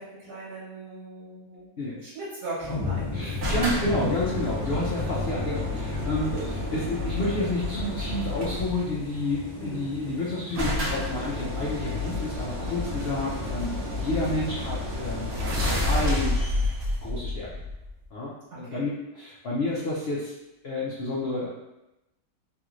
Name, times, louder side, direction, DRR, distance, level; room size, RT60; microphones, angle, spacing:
voice 1, 0.0-1.7 2.0-3.4 6.3-6.4 9.6-9.8 18.5-18.8, right 2 dB, 70° right, -10 dB, 1.5 m, -39 dB
sound 1, 2.6-15.4, left 3 dB, 15° left, 0.6 m, -38 dB
voice 2, 3.1-16.4 17.0-17.5 18.1-20.3 20.6-21.5, left 2 dB, 85° left, -6 dB, 0.5 m, -30 dB
sound 2, 3.4-8.9 9.9-10.0 10.2-10.3 10.5-18.0, left 2 dB, 55° right, 0.7 m, -30 dB
3.2 x 3.0 x 2.4 m, 0.92 s
omnidirectional pair, 1.8 m